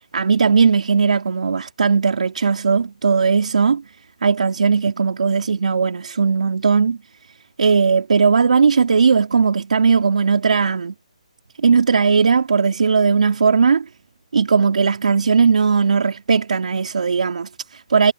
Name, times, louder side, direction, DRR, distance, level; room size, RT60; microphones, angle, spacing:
voice 1, 0.1-3.8 4.2-7.0 7.6-10.9 11.6-13.8 14.3-18.1, right 5 dB, 75° right, 3.8 m, -17 dB
hypercardioid pair, 165°, 4 cm